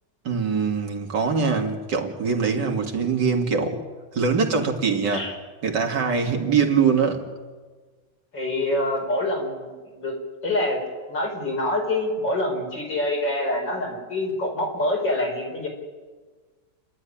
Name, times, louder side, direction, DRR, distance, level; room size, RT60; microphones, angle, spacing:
voice 1, 0.2-3.8 4.1-5.3 5.6-7.2, right 5 dB, 75° right, 3 dB, 2.8 m, -23 dB
voice 2, 8.3-9.7 10.0-10.1 10.4-10.8 11.1-15.7, left 1 dB, 80° left, 0 dB, 6.0 m, -25 dB
29.5 x 12.5 x 10.0 m, 1.4 s
omnidirectional pair, 1.9 m